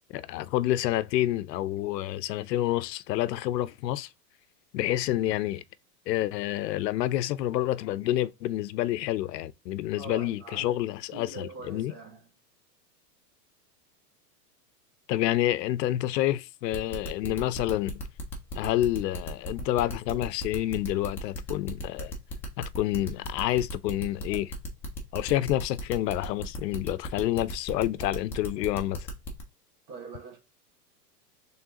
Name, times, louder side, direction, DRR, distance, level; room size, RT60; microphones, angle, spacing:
voice 1, 0.1-4.1 4.7-5.6 6.1-11.9 15.1-18.0 18.6-22.1 22.6-24.5 25.1-29.1, left 14 dB, 80° left, 0.6 m, -28 dB
voice 2, 10.0-10.8 11.1-12.2 29.9-30.4, right 3 dB, 45° right, 1.6 m, -43 dB
sound 1, 16.7-29.4, equal, 5° left, 0.3 m, -37 dB
4.7 x 3.3 x 2.8 m
hypercardioid pair, 130°, 48 cm